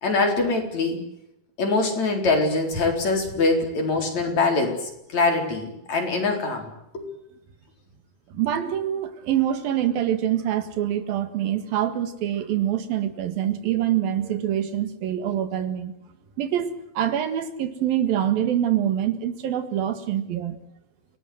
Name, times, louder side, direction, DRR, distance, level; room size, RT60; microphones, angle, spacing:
voice 1, 0.0-1.0 1.6-6.7 6.9-7.1, left 3 dB, 50° left, 3 dB, 5.2 m, -23 dB
voice 2, 8.3-15.9 16.4-16.7 17.0-20.6, right 11 dB, 80° right, 10 dB, 3.5 m, -25 dB
29.0 x 19.0 x 7.9 m, 0.82 s
omnidirectional pair, 4.1 m